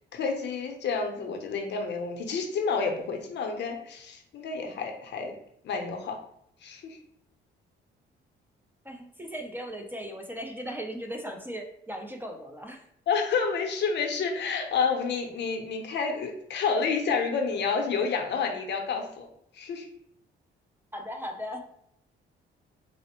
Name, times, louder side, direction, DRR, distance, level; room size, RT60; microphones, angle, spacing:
voice 1, 0.0-5.3 5.6-6.2 6.6-7.0 13.1-19.3 19.5-19.9, left 5 dB, 60° left, 3 dB, 0.7 m, -29 dB
voice 2, 8.8-12.8 20.9-21.6, equal, 10° right, 3 dB, 0.5 m, -37 dB
4.1 x 2.0 x 2.9 m, 0.71 s
cardioid pair, 90°, 20 cm